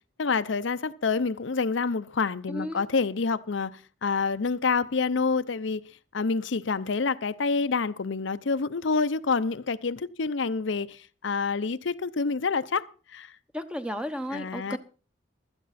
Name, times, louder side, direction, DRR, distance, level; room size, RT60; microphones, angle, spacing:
voice 1, 0.2-5.8 6.1-12.9 13.1-13.3 14.3-14.8, left 4 dB, 80° left, 0.6 m, -27 dB
voice 2, 2.5-2.8 13.5-14.8, equal, 5° right, 0.9 m, -33 dB
16.0 x 12.5 x 4.2 m
head